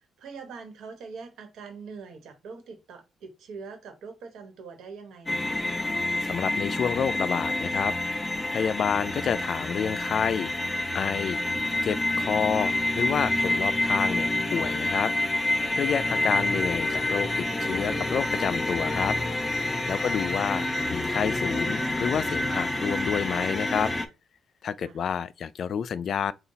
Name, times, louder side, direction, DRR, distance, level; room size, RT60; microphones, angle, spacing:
voice 1, 0.2-5.7 15.9-16.1 24.8-24.9, right 5 dB, 80° right, 1.3 m, -43 dB
sound 1, 5.3-24.1, left 2 dB, 20° left, 0.7 m, -28 dB
voice 2, 6.2-7.9 8.5-10.5 10.9-11.4 11.8-15.1 15.7-19.2 19.9-23.9 24.6-26.3, left 7 dB, 60° left, 0.3 m, -29 dB
3.9 x 2.3 x 4.0 m
cardioid pair, 90°, 0 cm